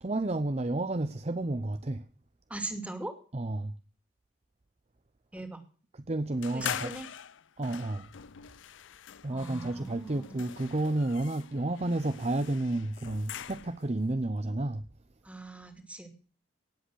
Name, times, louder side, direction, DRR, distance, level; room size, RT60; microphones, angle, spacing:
voice 1, 0.0-2.0 3.3-3.7 5.9-6.9 7.6-8.1 9.2-14.9, right 2 dB, 35° right, 0.7 m, -31 dB
voice 2, 2.5-3.1 5.3-5.6 6.5-7.1 9.3-10.4 15.2-16.1, right 2 dB, 5° right, 2.4 m, -40 dB
sound 1, 6.4-13.9, left 9 dB, 90° left, 0.5 m, -43 dB
18.5 x 7.8 x 6.3 m
head